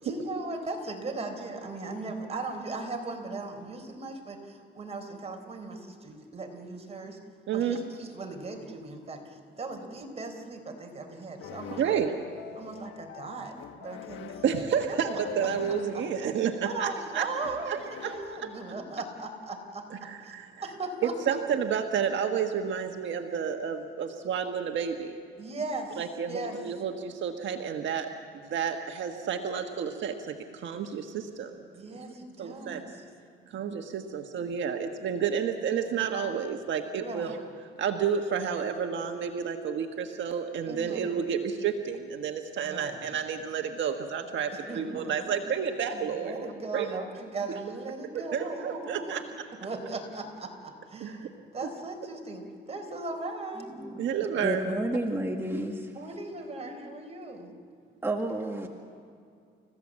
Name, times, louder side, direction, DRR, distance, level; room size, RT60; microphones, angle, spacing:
voice 1, 0.0-7.2 7.5-11.9 12.6-14.4 14.9-15.0 15.7-16.1 16.6-21.4 25.4-26.0 26.3-26.6 31.7-32.9 37.0-37.3 40.7-41.2 42.6-43.0 44.7-45.3 45.9-49.2 49.6-53.8 55.9-57.5, right 3 dB, 30° right, 3 dB, 4.1 m, -38 dB
voice 2, 7.5-7.8 11.8-12.1 14.4-17.3 17.7-18.1 19.9-20.5 21.0-25.1 26.0-28.1 28.5-30.1 30.6-31.0 31.4-31.5 32.4-32.8 33.5-37.4 37.8-46.3 46.7-46.9 48.3-49.2 51.0-51.1 54.0-54.6, right 7 dB, 70° right, 4 dB, 1.4 m, -30 dB
sound 1, 11.4-19.1, left 9 dB, 80° left, 1.4 m, -44 dB
voice 3, 53.7-54.0 54.4-55.9 58.0-58.7, right 1 dB, 10° right, 2 dB, 1.7 m, -31 dB
30.0 x 15.5 x 7.5 m, 2.4 s
cardioid pair, 90°, 20 cm